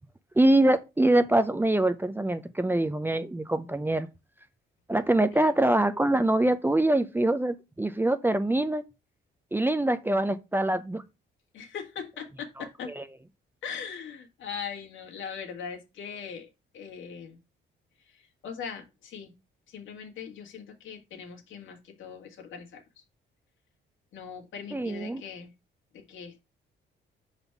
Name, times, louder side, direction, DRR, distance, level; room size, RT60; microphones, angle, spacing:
voice 1, 0.4-4.1 4.9-8.8 9.5-11.0 12.6-13.1 24.7-25.2, right 1 dB, 10° right, 0.6 m, -24 dB
voice 2, 11.5-12.9 13.6-16.5 16.7-17.4 18.4-19.3 19.7-22.8 24.1-25.5 25.9-26.4, left 6 dB, 75° left, 1.8 m, -40 dB
5.3 x 4.1 x 5.8 m
cardioid pair, 90°, 20 cm